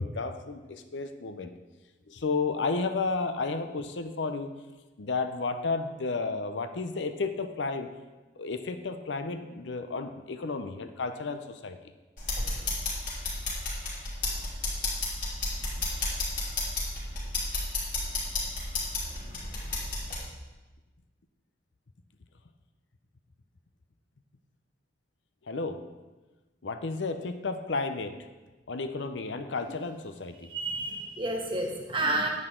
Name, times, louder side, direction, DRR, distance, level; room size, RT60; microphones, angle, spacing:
voice 1, 0.0-1.5 2.1-4.5 5.0-7.9 8.4-11.8 25.4-25.9 26.6-28.3 28.7-30.5, left 4 dB, 85° left, 9 dB, 0.7 m, -32 dB
sound 1, 12.2-20.2, left 2 dB, 50° left, 3.8 m, -32 dB
voice 2, 30.5-32.3, right 2 dB, 30° right, 1 dB, 1.6 m, -30 dB
10.5 x 8.8 x 3.8 m, 1.2 s
head